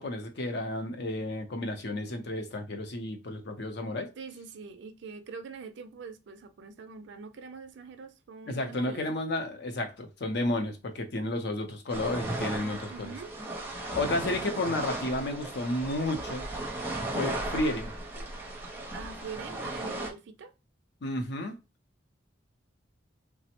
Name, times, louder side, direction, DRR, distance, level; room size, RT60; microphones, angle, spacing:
voice 1, 0.0-4.1 8.5-13.2 13.9-16.5 17.2-17.9 21.0-21.6, left 1 dB, 60° left, 0.6 m, -32 dB
voice 2, 4.2-9.0 12.9-13.3 18.9-20.5, right 5 dB, 70° right, 0.4 m, -44 dB
sound 1, 11.9-20.1, right 2 dB, 10° right, 0.6 m, -36 dB
3.2 x 2.0 x 2.8 m
head